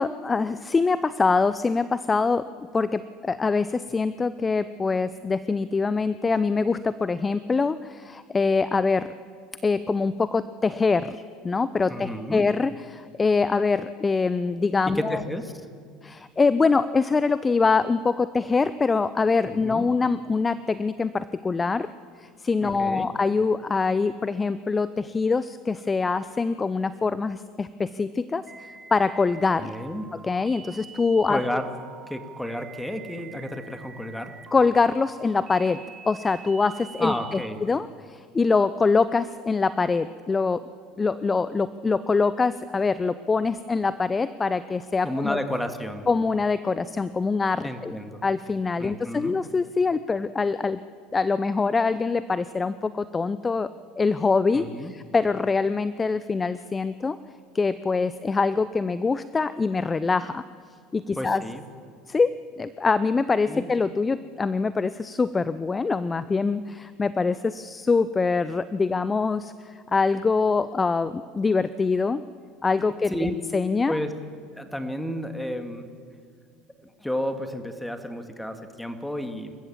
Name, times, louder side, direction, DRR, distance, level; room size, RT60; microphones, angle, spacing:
voice 1, 0.0-2.4 2.7-9.1 9.6-15.2 16.0-21.9 22.2-29.7 30.2-31.4 34.5-40.6 41.0-45.4 46.1-47.9 48.2-50.8 51.1-53.7 54.0-57.2 57.5-60.4 60.9-61.4 62.1-62.3 62.6-72.2 72.6-74.0, left 4 dB, 20° left, 15 dB, 0.6 m, -24 dB
voice 2, 11.9-12.4 14.9-15.7 19.6-19.8 22.6-23.1 29.6-30.1 31.3-31.7 32.1-34.3 37.0-37.6 45.0-46.1 47.6-48.2 48.8-49.3 54.5-54.9 61.2-61.6 63.5-63.7 73.1-73.4 73.9-74.1 74.5-75.9 77.0-79.6, equal, 5° left, 7 dB, 2.2 m, -31 dB
sound 1, 28.5-37.5, right 6 dB, 30° right, 1.4 m, -46 dB
27.5 x 15.0 x 7.5 m, 2.1 s
hypercardioid pair, 70°, 0 cm